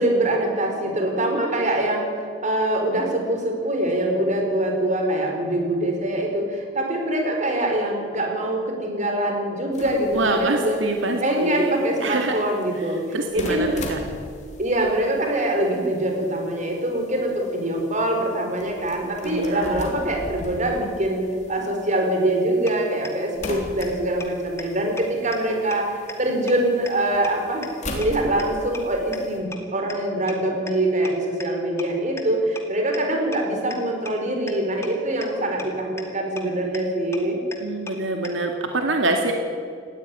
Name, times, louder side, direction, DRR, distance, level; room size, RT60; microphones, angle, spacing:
voice 1, 0.0-10.8 11.2-13.0 13.3-13.8 14.6-21.2 21.5-27.6 27.9-37.4, right 1 dB, 40° right, 2 dB, 4.9 m, -24 dB
sound 1, 9.7-29.4, left 1 dB, 40° left, 3.7 m, -40 dB
voice 2, 10.1-12.4 13.1-14.0 19.2-19.9 37.6-39.3, right 2 dB, 80° right, 3 dB, 2.1 m, -25 dB
sound 2, 22.7-22.8 23.0-23.1 23.4-23.5 23.8-23.9 24.2-24.3 24.6-24.7 25.0-25.1 25.3-25.4 25.7-25.8 26.1-26.2 26.5-26.6 26.9-27.0 27.2-27.3 27.6-27.7 28.0-28.1 28.4-28.5 28.7-28.8 29.1-29.2 29.5-29.6 29.9-30.0 30.3-30.4 30.7-30.8 31.0-31.1 31.4-31.5 31.8-31.9 32.2-32.3 32.6-32.7 32.9-33.0 33.3-33.4 33.7-33.8 34.1-34.2 34.5-34.6 34.8-34.9 35.2-35.3 35.6-35.7 36.0-36.1 36.4-36.5 36.7-36.8 37.1-37.2 37.5-37.6 37.9-38.0 38.2-38.3, left 3 dB, 15° left, 2.4 m, -34 dB
19.0 x 15.0 x 9.7 m, 2.2 s
head